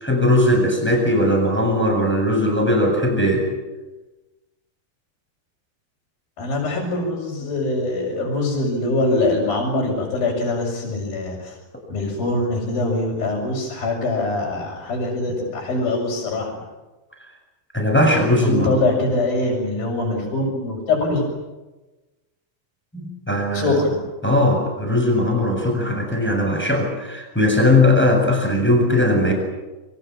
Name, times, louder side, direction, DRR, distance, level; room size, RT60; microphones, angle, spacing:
voice 1, 0.0-3.4 17.7-18.8 22.9-23.8 24.2-29.3, left 1 dB, ahead, 1 dB, 7.4 m, -19 dB
voice 2, 6.4-11.6 11.9-16.6 18.3-21.2 23.5-24.1, left 2 dB, 60° left, -5 dB, 7.3 m, -23 dB
28.5 x 25.0 x 7.4 m, 1.1 s
omnidirectional pair, 4.7 m